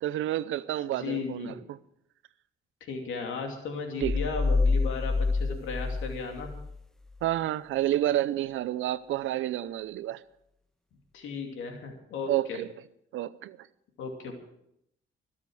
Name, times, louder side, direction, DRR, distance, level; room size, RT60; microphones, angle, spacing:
voice 1, 0.0-1.8 4.0-4.2 7.2-10.2 12.3-12.7 13.1-13.6, right 13 dB, 80° right, 0.7 m, -29 dB
voice 2, 0.9-1.6 2.8-6.5 11.1-12.6 14.0-14.3, left 4 dB, 80° left, 2.7 m, -35 dB
sound 1, 4.0-6.8, left 3 dB, 5° left, 0.6 m, -27 dB
21.5 x 7.5 x 6.4 m
cardioid pair, 90°, 20 cm